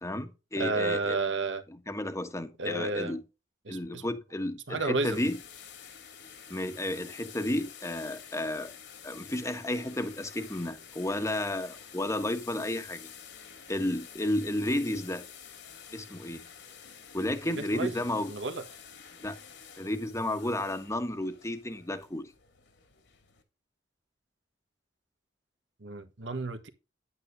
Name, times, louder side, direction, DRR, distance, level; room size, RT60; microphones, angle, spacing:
voice 1, 0.0-1.2 1.7-3.2 3.7-5.4 6.5-8.7 9.0-13.1 13.7-15.3 15.9-16.4 17.1-18.3 19.2-19.4 19.8-22.3, left 1 dB, 15° left, 1.3 m, -32 dB
voice 2, 0.6-1.6 2.6-3.2 3.6-4.0 4.7-5.2 17.4-18.0 18.3-18.6 25.8-26.7, right 3 dB, 80° right, 1.5 m, -31 dB
sound 1, 5.1-23.4, left 7 dB, 70° left, 2.5 m, -49 dB
10.5 x 8.9 x 2.7 m
head